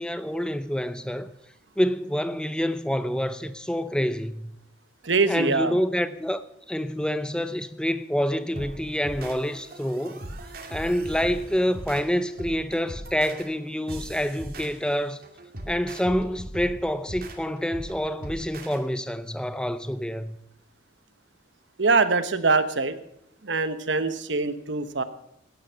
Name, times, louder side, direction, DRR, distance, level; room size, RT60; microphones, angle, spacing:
voice 1, 0.0-1.3 1.8-4.5 5.3-6.4 6.7-10.2 10.7-15.2 15.7-20.4, equal, 5° left, 0.6 m, -27 dB
voice 2, 5.0-5.8 21.8-23.0 23.4-25.0, right 4 dB, 75° right, 1.1 m, -23 dB
sound 1, 8.5-18.8, right 1 dB, 50° right, 2.3 m, -40 dB
17.5 x 10.5 x 5.7 m
head